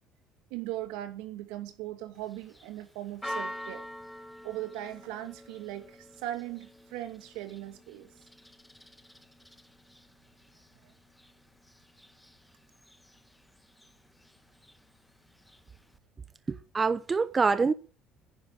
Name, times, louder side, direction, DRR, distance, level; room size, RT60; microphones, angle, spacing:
voice 1, 0.5-3.9 4.4-8.1 10.8-10.9, right 14 dB, 80° right, 2.5 m, -39 dB
Church bell, 2.2-16.0, equal, 5° left, 1.4 m, -47 dB
voice 2, 16.5-17.7, right 4 dB, 30° right, 0.9 m, -26 dB
11.0 x 9.7 x 9.3 m
supercardioid pair, 75°, 0 cm